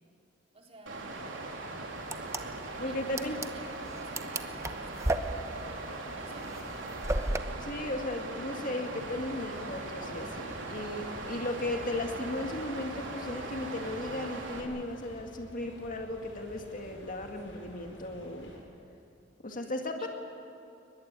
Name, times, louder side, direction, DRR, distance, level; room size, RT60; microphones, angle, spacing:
voice 1, 0.5-1.2 2.9-3.7 4.0-5.8 6.1-6.9 20.0-20.1, right 1 dB, 35° right, -1 dB, 4.2 m, -54 dB
Water, 0.9-14.6, right 2 dB, 90° right, 3.8 m, -40 dB
sound 1, 2.0-7.4, right 2 dB, 15° right, 0.9 m, -34 dB
voice 2, 2.8-3.4 7.6-18.5 19.4-20.1, left 1 dB, 45° left, 3 dB, 2.0 m, -36 dB
sound 2, 9.0-18.6, equal, 80° left, 7.8 m, -51 dB
23.0 x 20.5 x 9.7 m, 2.7 s
head